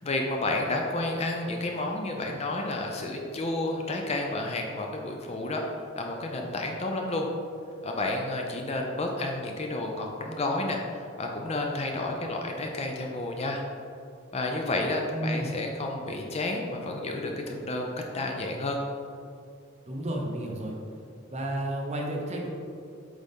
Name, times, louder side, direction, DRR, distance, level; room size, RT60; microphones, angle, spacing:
voice 1, 0.0-7.3 7.8-13.6 14.3-18.8, left 2 dB, 30° left, 1 dB, 0.5 m, -31 dB
voice 2, 15.1-15.5 19.9-20.7 21.3-22.5, right 1 dB, 30° right, -1 dB, 0.8 m, -31 dB
8.1 x 3.9 x 3.6 m, 2.4 s
head